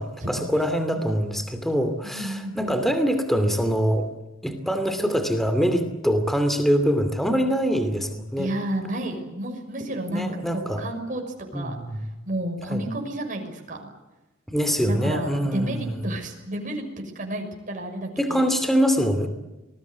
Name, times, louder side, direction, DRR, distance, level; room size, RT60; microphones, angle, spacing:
voice 1, 0.0-4.1 4.4-8.5 10.1-10.8 11.5-12.1 12.7-12.8 14.5-16.0 18.2-19.3, equal, ahead, 8 dB, 2.6 m, -24 dB
voice 2, 2.0-2.8 8.4-11.2 11.5-11.8 12.3-13.9 14.8-18.5, right 1 dB, 40° right, 2 dB, 6.2 m, -31 dB
27.0 x 20.5 x 8.3 m, 1.1 s
head